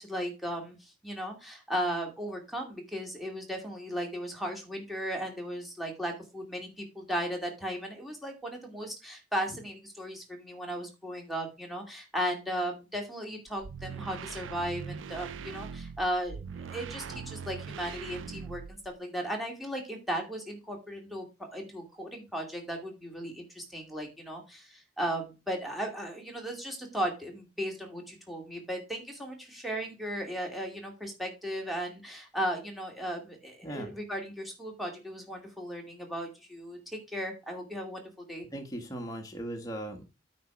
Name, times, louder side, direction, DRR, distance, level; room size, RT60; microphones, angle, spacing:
voice 1, 0.0-38.5, equal, ahead, 0 dB, 2.4 m, -36 dB
sound 1, 13.5-19.0, right 6 dB, 85° right, 0.4 m, -41 dB
voice 2, 33.6-33.9 38.5-40.1, right 1 dB, 20° left, 2 dB, 1.5 m, -38 dB
9.3 x 4.3 x 5.9 m, 0.28 s
head